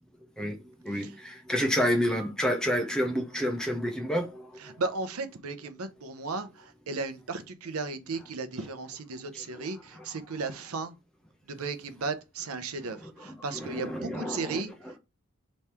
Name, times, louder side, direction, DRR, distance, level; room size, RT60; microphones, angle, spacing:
voice 1, 0.4-4.8 9.3-10.0 12.8-14.9, equal, 5° left, 0.8 m, -30 dB
voice 2, 4.6-11.0 11.5-14.7, right 3 dB, 85° right, 0.7 m, -35 dB
3.5 x 3.1 x 4.2 m
head